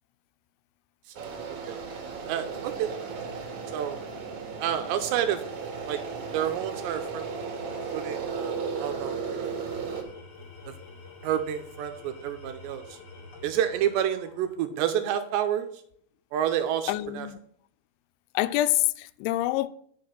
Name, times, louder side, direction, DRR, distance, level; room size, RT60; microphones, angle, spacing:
sound 1, 1.1-10.0, right 5 dB, 55° right, 2.3 m, -35 dB
voice 1, 1.5-1.8 2.3-3.0 3.7-4.0 4.6-5.4 5.9-6.0 6.3-7.3 7.9-9.4 10.7-10.8 11.2-13.0 13.4-15.8 16.3-17.3, right 10 dB, 80° right, 2.5 m, -29 dB
Tools, 9.5-14.9, left 4 dB, 50° left, 2.1 m, -48 dB
voice 2, 16.9-17.4 18.3-19.7, left 15 dB, 85° left, 2.7 m, -26 dB
9.6 x 6.7 x 5.7 m
omnidirectional pair, 5.6 m